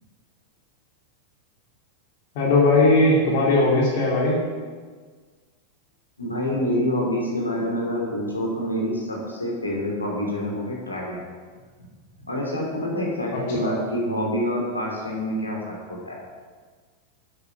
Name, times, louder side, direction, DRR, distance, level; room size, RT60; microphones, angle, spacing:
voice 1, 2.3-4.4 13.3-13.7, left 2 dB, 50° left, -3 dB, 2.6 m, -19 dB
voice 2, 6.2-11.2 12.2-16.2, equal, 80° left, -2 dB, 2.9 m, -27 dB
9.3 x 8.5 x 6.0 m, 1.5 s
figure-of-eight pair, 90°, 0 cm